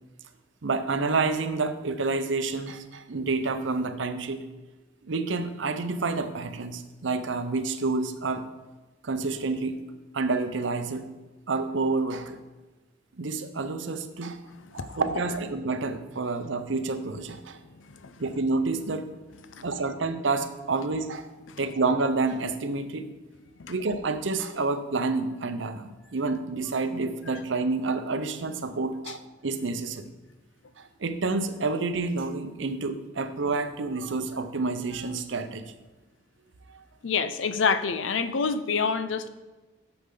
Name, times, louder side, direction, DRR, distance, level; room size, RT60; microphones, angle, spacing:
voice 1, 0.6-4.4 5.1-8.4 9.0-9.8 10.1-11.1 11.5-12.4 13.2-14.4 14.7-17.6 18.2-19.0 19.6-21.3 21.6-23.1 23.7-30.0 30.8-35.7, right 3 dB, 70° right, 9 dB, 0.7 m, -29 dB
voice 2, 14.6-15.0 17.9-18.1 19.5-19.6 21.5-21.6 23.6-23.7 37.0-39.3, left 5 dB, 75° left, 11 dB, 0.6 m, -28 dB
8.4 x 7.0 x 3.8 m, 1.2 s
head